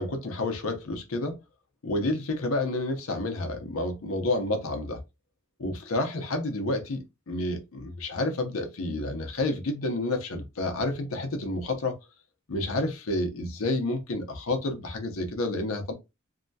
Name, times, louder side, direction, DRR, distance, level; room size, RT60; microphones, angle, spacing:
voice 1, 0.0-1.4 1.8-5.0 5.6-12.0 12.5-15.9, left 2 dB, 90° left, 0.7 m, -29 dB
2.7 x 2.2 x 2.6 m
head